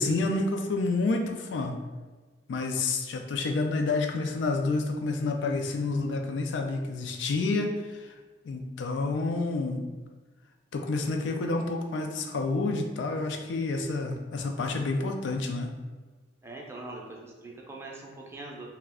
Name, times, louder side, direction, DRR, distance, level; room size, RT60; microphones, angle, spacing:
voice 1, 0.0-1.7 2.5-8.1 8.4-9.8 10.7-15.7, left 3 dB, 85° left, 3 dB, 0.3 m, -29 dB
voice 2, 16.4-18.7, right 2 dB, 15° right, -2 dB, 0.4 m, -42 dB
2.3 x 2.1 x 3.5 m, 1.3 s
head